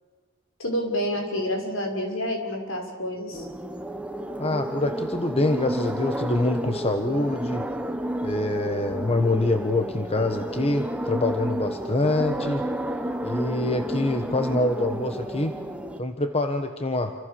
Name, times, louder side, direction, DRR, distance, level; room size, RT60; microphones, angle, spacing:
voice 1, 0.6-3.5, equal, 70° left, 2 dB, 6.5 m, -28 dB
sound 1, 3.3-16.0, equal, 5° right, 1.3 m, -31 dB
voice 2, 4.4-7.7 8.2-12.6 13.2-15.6 16.0-17.1, left 2 dB, 30° left, 6 dB, 1.3 m, -25 dB
28.5 x 26.5 x 7.1 m, 1.5 s
head